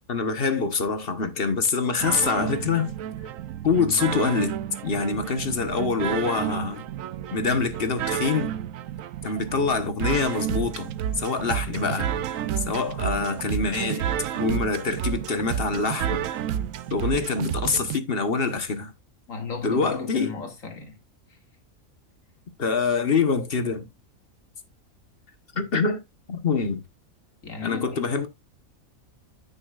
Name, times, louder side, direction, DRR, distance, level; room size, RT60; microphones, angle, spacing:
voice 1, 0.1-2.9 3.6-4.6 4.8-6.8 7.3-8.5 9.2-10.9 11.2-12.1 12.6-14.1 14.3-16.2 16.9-18.9 19.6-20.3 22.6-23.9 25.6-26.0 26.3-26.8 27.6-28.3, left 4 dB, 45° left, 1.2 m, -25 dB
sound 1, 2.0-18.0, right 10 dB, 75° right, 1.0 m, -31 dB
voice 2, 19.3-21.0 21.3-21.4 25.5-25.7 27.4-28.1, left 4 dB, 70° left, 2.6 m, -35 dB
9.5 x 8.7 x 2.4 m
omnidirectional pair, 1.4 m